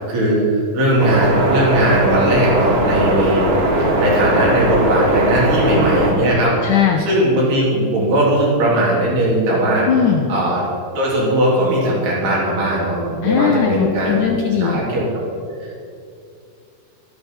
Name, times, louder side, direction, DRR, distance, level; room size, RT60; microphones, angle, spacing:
voice 1, 0.1-3.5 3.8-9.9 10.3-10.6 11.0-14.3 14.6-15.1 15.6-15.8, right 1 dB, 80° right, -5 dB, 5.6 m, -18 dB
sound 1, 1.0-6.1, right 1 dB, 55° right, 3.1 m, -18 dB
voice 2, 6.6-7.1 9.9-10.3 13.2-14.8, left 8 dB, 75° left, 2 dB, 1.9 m, -18 dB
12.5 x 12.5 x 5.7 m, 2.4 s
omnidirectional pair, 4.5 m